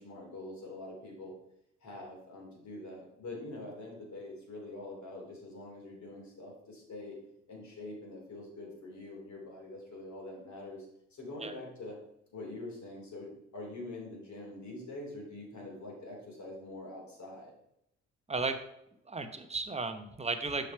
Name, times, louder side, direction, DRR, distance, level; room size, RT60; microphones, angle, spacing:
voice 1, 0.0-1.3 1.8-7.2 7.5-12.0 12.3-17.5, left 2 dB, 50° left, -2 dB, 3.0 m, -45 dB
voice 2, 19.1-20.7, right 3 dB, 15° right, 8 dB, 1.0 m, -34 dB
6.3 x 5.7 x 4.5 m, 0.79 s
hypercardioid pair, 50°, 36 cm